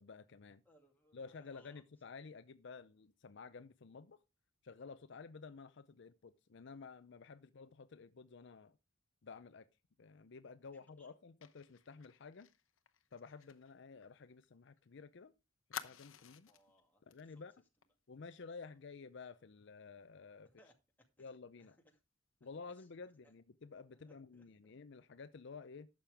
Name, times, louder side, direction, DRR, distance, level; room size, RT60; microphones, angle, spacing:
voice 1, 0.0-0.6 1.1-4.2 4.6-8.7 9.2-9.7 10.0-12.5 13.1-15.3 15.8-16.5 17.1-17.5 18.1-20.5 21.2-21.8 22.4-25.9, left 4 dB, 60° left, 0.5 m, -52 dB
voice 2, 0.6-1.8 10.7-11.2 16.2-17.5 18.7-18.8 20.4-20.7 21.2-21.3 21.6-22.0 22.7-22.9 23.9-24.7, equal, 10° left, 2.3 m, -70 dB
Fire, 11.4-14.9 15.1-15.2 15.7-16.7 17.1-17.3 17.6-17.8, left 8 dB, 85° left, 0.9 m, -51 dB
11.5 x 7.4 x 3.4 m
head